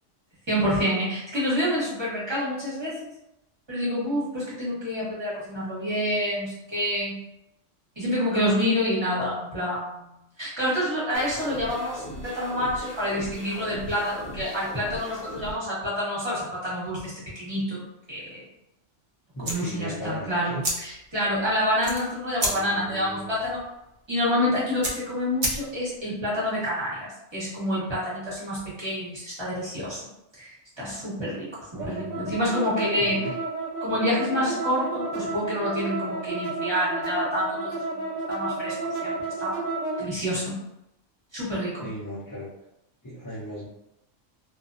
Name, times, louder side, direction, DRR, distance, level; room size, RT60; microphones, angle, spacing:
voice 1, 0.5-3.1 3.7-7.2 8.0-17.1 17.4-17.8 18.1-18.4 19.4-23.6 24.1-30.0 30.4-31.5 31.7-33.2 33.8-38.0 38.3-39.6 40.0-40.6 41.3-41.9, equal, 25° right, -9 dB, 1.0 m, -28 dB
sound 1, 11.1-15.5, equal, 60° left, 1.1 m, -39 dB
voice 2, 19.3-20.6 22.5-23.4 31.7-32.4 33.0-33.3 41.8-42.5 43.0-43.7, equal, 20° left, -13 dB, 0.5 m, -37 dB
sound 2, 19.4-26.0, right 1 dB, 60° right, 0.7 m, -33 dB
sound 3, 31.8-40.0, right 3 dB, 85° right, 1.0 m, -31 dB
2.4 x 2.1 x 2.5 m, 0.88 s
omnidirectional pair, 1.3 m